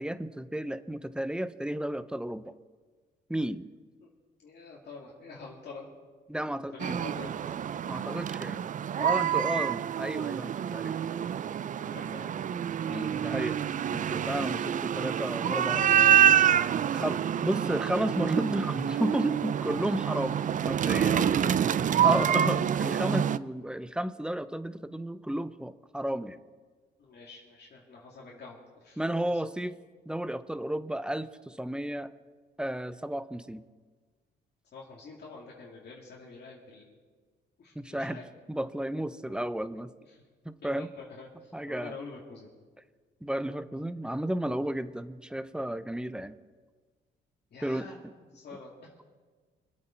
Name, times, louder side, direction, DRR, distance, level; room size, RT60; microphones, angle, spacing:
voice 1, 0.0-2.5 3.3-3.7 6.3-7.0 7.9-8.6 9.0-11.0 12.9-13.6 13.9-15.8 16.9-21.2 22.0-26.4 29.0-29.8 30.1-32.1 32.6-33.6 37.8-38.2 38.5-39.9 40.4-40.9 41.5-42.0 43.2-46.3 47.6-48.1, right 1 dB, 5° right, 13 dB, 0.6 m, -33 dB
voice 2, 4.4-5.9 6.4-7.3 11.7-12.4 14.7-16.4 16.6-17.2 21.1-21.7 27.0-29.3 34.7-37.0 37.6-38.3 38.8-39.5 40.1-40.2 41.0-42.5 44.5-44.7 47.5-48.0 48.3-48.8, left 4 dB, 55° left, -4 dB, 2.5 m, -46 dB
sound 1, 6.8-23.4, right 9 dB, 40° right, 0.4 m, -27 dB
25.5 x 8.7 x 4.5 m, 1.5 s
cardioid pair, 90°, 20 cm